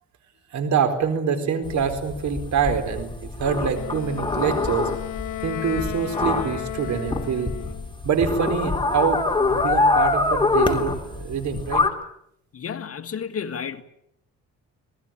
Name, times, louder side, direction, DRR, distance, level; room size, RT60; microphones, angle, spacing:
voice 1, 0.5-4.9 5.4-7.6 8.0-9.2 9.5-11.8, right 6 dB, 70° right, 4.2 m, -25 dB
sound 1, 1.6-11.9, left 3 dB, 15° left, 3.5 m, -25 dB
Wind instrument woodwind instrument, 3.7-7.9, left 14 dB, 85° left, 1.5 m, -34 dB
voice 2, 12.5-13.8, left 7 dB, 50° left, 1.9 m, -31 dB
26.0 x 19.5 x 8.9 m
cardioid pair, 90°, 30 cm